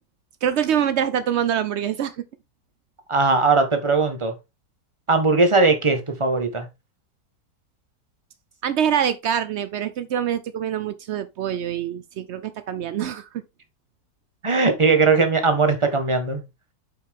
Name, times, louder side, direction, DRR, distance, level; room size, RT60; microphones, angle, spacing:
voice 1, 0.4-2.2 8.6-13.3, right 9 dB, 85° right, 0.6 m, -25 dB
voice 2, 3.1-4.3 5.1-6.7 14.4-16.4, right 3 dB, 20° right, 1.3 m, -19 dB
8.4 x 5.6 x 3.7 m
omnidirectional pair, 1.9 m